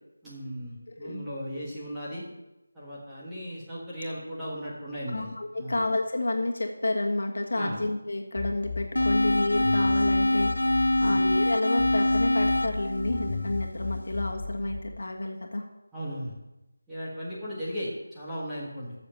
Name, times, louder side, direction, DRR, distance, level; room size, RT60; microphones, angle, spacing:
voice 1, 0.2-2.2 2.7-5.3 5.6-5.7 7.5-7.8 11.0-11.2 15.9-16.3 16.9-18.9, equal, 5° right, -11 dB, 1.5 m, -36 dB
voice 2, 0.9-1.2 5.1-15.6, left 2 dB, 55° left, 1 dB, 1.6 m, -30 dB
sound 1, 8.4-11.4 11.8-14.8, left 4 dB, 20° left, 0.8 m, -35 dB
sound 2, 9.0-14.0, left 1 dB, 90° left, 0.6 m, -25 dB
8.3 x 6.9 x 7.4 m, 0.97 s
figure-of-eight pair, 175°, 0 cm